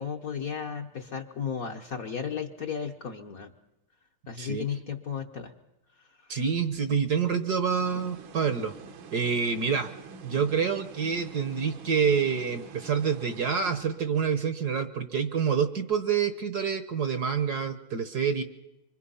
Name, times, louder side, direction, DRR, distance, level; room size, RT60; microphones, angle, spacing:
voice 1, 0.0-3.5 4.3-5.5, left 7 dB, 50° left, 4 dB, 1.2 m, -34 dB
voice 2, 6.3-8.7 9.1-9.9 10.2-18.4, right 6 dB, 55° right, 9 dB, 1.4 m, -27 dB
sound 1, 7.8-14.4, right 5 dB, 70° right, 1.8 m, -47 dB
25.5 x 25.5 x 5.6 m, 0.93 s
omnidirectional pair, 2.3 m